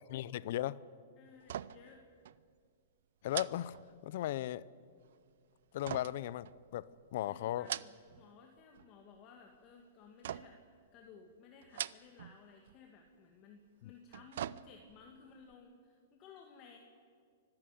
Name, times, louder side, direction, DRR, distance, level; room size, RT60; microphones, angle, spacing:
voice 1, 0.1-0.8 3.2-3.7 4.0-4.6 5.7-7.7 13.8-13.9, left 13 dB, 55° left, 20 dB, 0.6 m, -37 dB
voice 2, 1.2-2.1 7.2-10.6 10.9-16.8, left 5 dB, 35° left, 2 dB, 2.1 m, -58 dB
sound 1, 1.4-2.0 2.3-2.4 3.3-4.4 5.8-7.0 7.5-8.3 8.6-9.2 10.2-10.7 11.6-12.4 12.7-12.8 13.9-15.1 15.5-15.6, right 11 dB, 70° right, 0.6 m, -43 dB
24.5 x 15.0 x 9.3 m, 2.1 s
hypercardioid pair, 145°, 0 cm